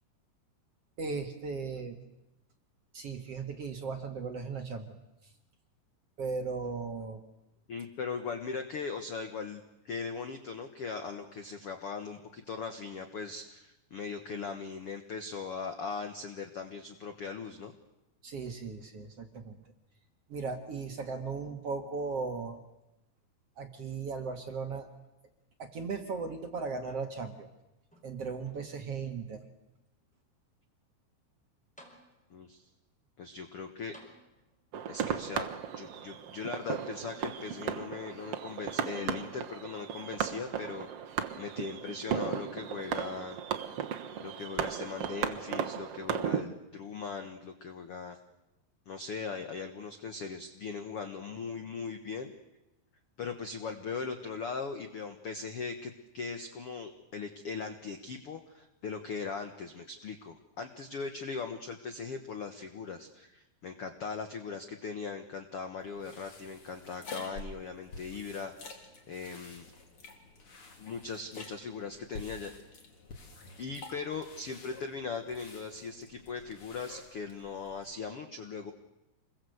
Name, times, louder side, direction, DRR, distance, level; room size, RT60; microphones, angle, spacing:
voice 1, 1.0-2.0 2.9-5.0 6.2-7.2 18.2-19.6 20.3-22.6 23.6-24.9 25.6-27.5 28.0-29.4, right 4 dB, 50° right, 5 dB, 2.1 m, -37 dB
voice 2, 7.7-17.7 32.3-32.7 33.2-33.9 34.9-35.5 35.7-43.4 44.2-48.2 48.9-52.3 53.2-68.8 69.1-69.6 70.8-72.5 73.6-78.7, left 5 dB, 70° left, 7 dB, 1.3 m, -39 dB
sound 1, 26.8-27.5 27.9-28.9 29.6-29.7 31.3-31.4 31.8-32.5 33.9-34.8 35.8-35.9, equal, ahead, 4.3 m, -59 dB
sound 2, 34.7-46.4, right 8 dB, 65° right, 1.5 m, -36 dB
sound 3, 65.8-77.9, left 3 dB, 35° left, 3.3 m, -49 dB
27.5 x 21.5 x 8.0 m, 0.94 s
omnidirectional pair, 4.7 m